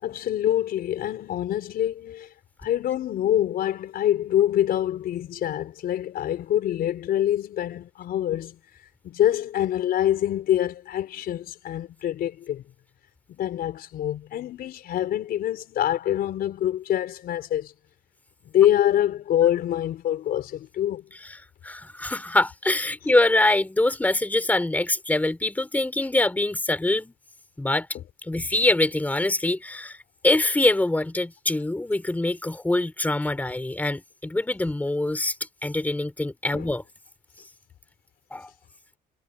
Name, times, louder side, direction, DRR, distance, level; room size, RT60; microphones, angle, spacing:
voice 1, 0.0-2.3 2.6-8.6 9.0-12.6 13.3-17.7 18.4-21.1 28.3-28.5 36.5-36.7, left 11 dB, 65° left, 4.8 m, -25 dB
voice 2, 21.6-27.1 27.6-27.9 28.2-35.4 35.6-36.8 38.3-38.5, left 2 dB, 10° left, 3.6 m, -24 dB
cardioid pair, 110°, 17 cm